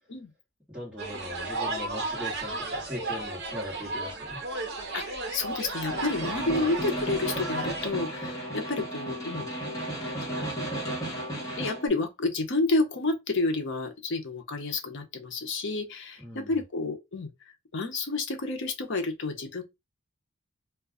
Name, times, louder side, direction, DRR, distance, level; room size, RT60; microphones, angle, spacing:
voice 1, 0.7-4.4 6.3-6.6 16.2-16.6, left 1 dB, 5° right, 1.3 m, -40 dB
sound 1, 1.0-7.9, right 2 dB, 50° right, 0.8 m, -34 dB
voice 2, 4.9-9.5 10.4-10.8 11.6-17.3 17.7-19.6, left 3 dB, 55° left, 0.6 m, -30 dB
Snare drum, 5.7-11.9, right 1 dB, 15° left, 1.0 m, -34 dB
2.3 x 2.2 x 3.5 m
head